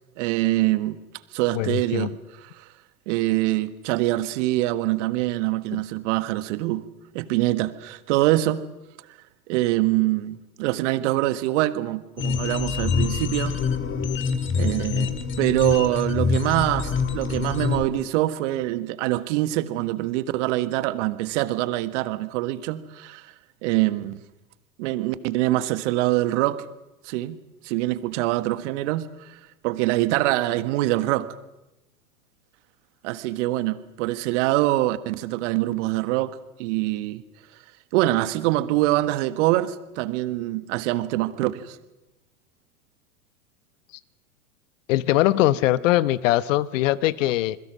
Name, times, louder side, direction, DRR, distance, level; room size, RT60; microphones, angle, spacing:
voice 1, 0.2-1.0 1.3-2.1 2.6-2.7 3.1-6.8 7.1-8.6 9.5-13.6 14.6-23.3 23.6-24.2 24.8-26.6 27.0-27.4 27.6-29.4 29.6-31.3 33.0-37.2 37.9-41.8, right 16 dB, 55° right, 13 dB, 1.6 m, -24 dB
voice 2, 1.5-2.2 44.9-47.6, left 15 dB, 60° left, 18 dB, 1.1 m, -21 dB
sound 1, 12.2-17.8, left 6 dB, 25° left, 2.1 m, -25 dB
28.0 x 21.5 x 6.3 m, 0.95 s
hypercardioid pair, 100°, 44 cm